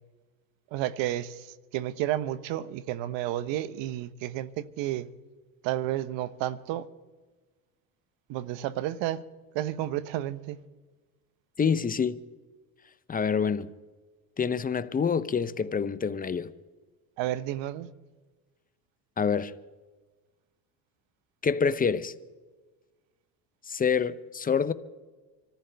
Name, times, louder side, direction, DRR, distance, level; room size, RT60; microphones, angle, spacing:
voice 1, 0.7-1.3 1.7-5.1 5.6-6.9 8.3-9.2 9.5-10.6 17.2-17.9, right 13 dB, 65° right, 0.9 m, -31 dB
voice 2, 11.6-12.2 13.1-13.7 14.4-16.5 19.2-19.5 21.4-22.1 23.7-24.7, left 6 dB, 20° left, 0.6 m, -26 dB
25.5 x 14.5 x 3.4 m
supercardioid pair, 90°, 49 cm